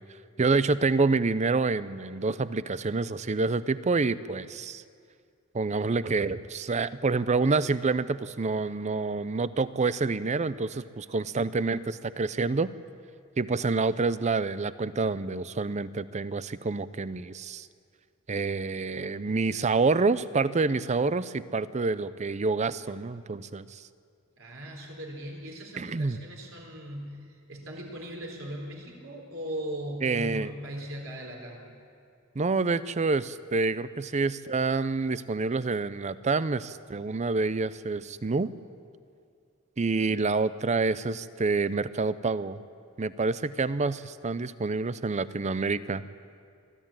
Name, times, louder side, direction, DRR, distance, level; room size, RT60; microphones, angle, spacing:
voice 1, 0.4-4.8 5.5-12.7 13.4-17.7 18.3-23.8 25.8-26.2 30.0-30.5 32.4-38.5 39.8-42.6 43.0-46.0, right 3 dB, 35° right, 16 dB, 0.5 m, -27 dB
voice 2, 24.4-31.6, equal, 70° right, 0 dB, 4.0 m, -39 dB
23.0 x 13.5 x 8.9 m, 2.3 s
head